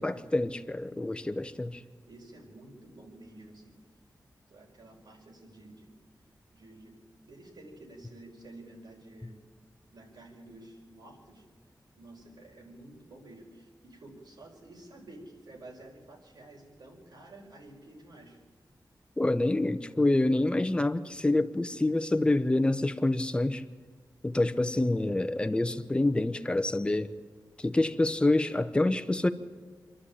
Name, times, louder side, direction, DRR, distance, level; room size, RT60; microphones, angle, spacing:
voice 1, 0.0-1.8 19.2-23.6 24.2-27.1 27.6-29.3, left 2 dB, 15° left, 0.9 m, -27 dB
voice 2, 2.0-3.8 4.5-5.9 6.5-9.4 9.9-11.4 11.9-18.4, right 2 dB, 80° right, 4.9 m, -51 dB
27.0 x 11.5 x 8.8 m
wide cardioid pair, 130°, 7 cm